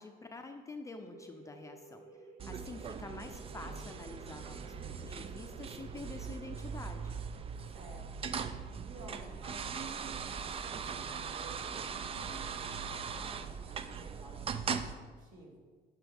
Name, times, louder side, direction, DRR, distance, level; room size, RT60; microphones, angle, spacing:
voice 1, 0.0-2.0 2.4-7.2, left 3 dB, 20° left, 5 dB, 0.6 m, -47 dB
sound 1, 0.8-10.2, right 2 dB, 75° right, 1.6 m, -56 dB
sound 2, 2.4-14.9, right 6 dB, 35° right, 0.4 m, -40 dB
voice 2, 2.4-2.8 7.7-8.4 8.9-13.4 13.7-15.6, right 2 dB, 50° right, -2 dB, 2.5 m, -53 dB
11.0 x 5.9 x 3.5 m, 1.5 s
cardioid pair, 110°, 17 cm